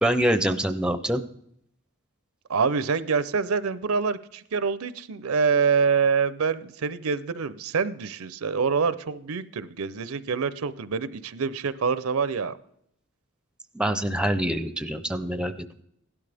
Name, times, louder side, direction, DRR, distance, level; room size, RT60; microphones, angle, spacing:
voice 1, 0.0-1.2 13.7-15.5, right 1 dB, 5° right, 0.5 m, -25 dB
voice 2, 2.5-12.6, right 5 dB, 75° right, 0.6 m, -26 dB
16.5 x 12.0 x 3.4 m
head